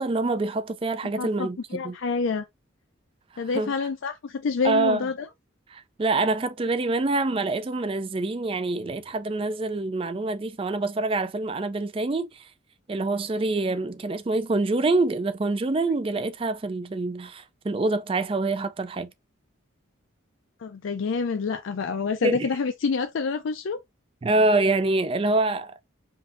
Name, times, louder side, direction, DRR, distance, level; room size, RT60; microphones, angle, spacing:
voice 1, 0.0-2.0 3.3-3.7 4.6-5.1 5.7-12.5 12.9-19.1 22.2-22.5 24.2-25.8, right 2 dB, 25° right, 0.3 m, -26 dB
voice 2, 1.2-2.4 3.4-5.1 20.6-23.8, left 5 dB, 70° left, 0.4 m, -27 dB
5.1 x 2.6 x 2.5 m
head